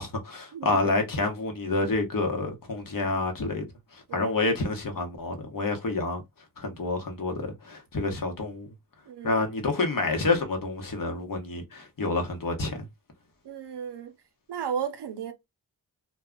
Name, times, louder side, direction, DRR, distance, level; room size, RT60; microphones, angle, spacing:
voice 1, 0.0-3.7 3.9-6.2 6.6-8.7 9.2-12.9, left 3 dB, 55° left, 1.0 m, -28 dB
voice 2, 9.1-9.4 13.4-14.1 14.5-15.3, right 7 dB, 80° right, 0.7 m, -34 dB
2.2 x 2.2 x 3.7 m
cardioid pair, 50°, 41 cm